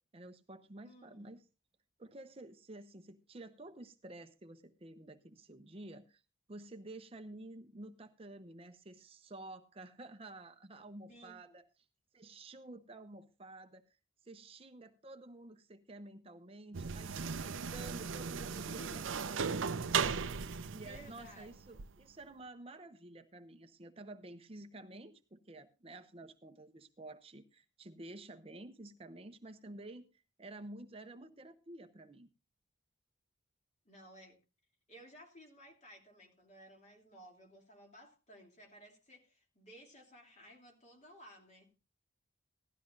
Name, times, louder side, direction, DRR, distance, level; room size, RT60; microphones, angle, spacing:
voice 1, 0.0-1.4 2.0-6.2 6.5-11.6 12.1-13.8 14.2-20.2 20.7-32.3, right 2 dB, 30° right, 0.7 m, -51 dB
voice 2, 0.8-1.3 11.1-11.6 18.7-19.3 20.4-21.6 33.8-34.4 34.9-41.7, equal, 35° left, 2.9 m, -57 dB
sound 1, 16.7-21.9, right 6 dB, 75° right, 0.6 m, -37 dB
16.5 x 12.5 x 2.6 m
head